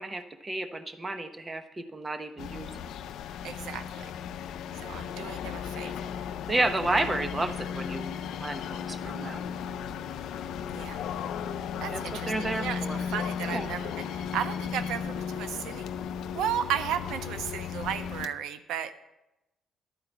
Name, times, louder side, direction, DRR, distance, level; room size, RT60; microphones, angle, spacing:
voice 1, 0.0-2.7 6.5-8.1 8.4-9.5 11.9-13.1 13.5-13.7, right 2 dB, 25° right, 8 dB, 1.0 m, -31 dB
sound 1, 2.4-18.3, left 7 dB, 85° left, 0.5 m, -35 dB
voice 2, 3.4-4.1 4.8-5.9 10.7-11.1 11.8-12.8 13.1-15.8 16.3-18.9, right 9 dB, 90° right, 12 dB, 0.6 m, -34 dB
12.0 x 4.8 x 7.9 m, 0.95 s
cardioid pair, 90°, 0 cm